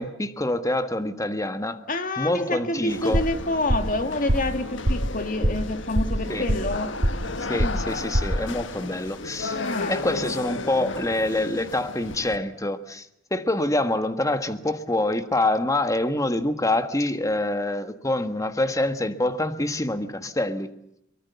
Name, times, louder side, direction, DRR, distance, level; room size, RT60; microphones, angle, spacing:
voice 1, 0.0-1.8 2.2-3.2 6.3-6.4 7.4-9.6 9.9-20.7, left 1 dB, 15° left, 1.5 m, -26 dB
voice 2, 1.9-6.9 7.5-8.0 9.5-10.1, left 2 dB, 45° left, 2.4 m, -28 dB
sound 1, 2.9-12.4, left 3 dB, 75° left, 1.4 m, -34 dB
sound 2, 3.1-3.4 3.7-4.0 4.3-4.6 4.8-5.1 5.4-5.7 5.9-6.8 7.0-7.3 7.6-7.9 8.1-8.4, right 1 dB, 85° right, 2.3 m, -23 dB
23.5 x 23.0 x 7.0 m
head